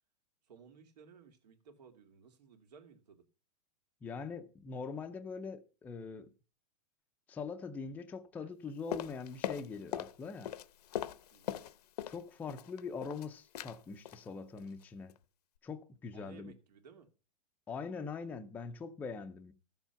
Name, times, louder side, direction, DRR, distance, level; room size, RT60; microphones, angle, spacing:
voice 1, 0.5-3.2 8.4-8.8 11.3-11.7 16.1-17.1, right 6 dB, 85° right, 2.5 m, -58 dB
voice 2, 4.0-6.3 7.3-10.5 12.1-15.1 15.6-16.5 17.7-19.5, left 5 dB, 10° left, 0.5 m, -42 dB
sound 1, 8.9-10.2 10.4-12.2 12.5-13.3 13.5-13.8 14.1-14.3 14.6-14.8 15.1-15.2, left 11 dB, 75° left, 0.9 m, -40 dB
13.5 x 7.2 x 5.7 m
supercardioid pair, 160°, 20 cm